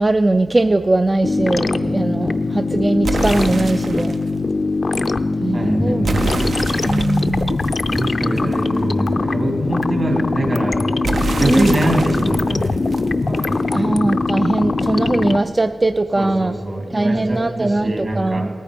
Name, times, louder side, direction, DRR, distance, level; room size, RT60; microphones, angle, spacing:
voice 1, 0.0-4.1 5.4-6.1 6.9-7.6 11.4-11.8 13.7-16.6 16.9-18.5, right 2 dB, 30° right, 9 dB, 0.3 m, -20 dB
sound 1, 1.2-15.4, left 3 dB, 50° left, 0.5 m, -21 dB
sound 2, 3.0-4.3 6.0-8.8 11.0-13.8, right 3 dB, 75° right, 0.7 m, -27 dB
voice 2, 5.5-6.3 7.8-10.8 11.4-13.9 16.2-18.5, right 1 dB, 55° right, 2 dB, 2.4 m, -24 dB
18.0 x 9.4 x 5.2 m, 2.3 s
cardioid pair, 55°, 0 cm